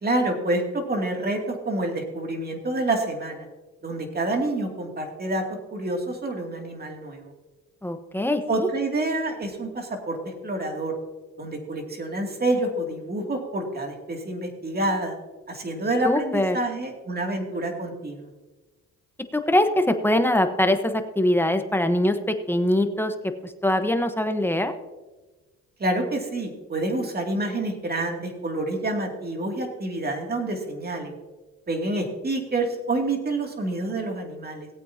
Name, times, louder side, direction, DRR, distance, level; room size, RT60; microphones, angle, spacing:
voice 1, 0.0-3.5 3.8-5.4 5.7-7.3 8.5-10.9 11.4-15.1 15.5-18.3 25.8-31.1 31.7-34.7, right 2 dB, 30° right, 2 dB, 2.6 m, -28 dB
voice 2, 7.8-8.7 16.0-16.6 19.3-23.1 23.4-24.7, left 1 dB, 5° left, 7 dB, 1.1 m, -23 dB
18.5 x 8.5 x 2.8 m, 1.2 s
cardioid pair, 90°, 30 cm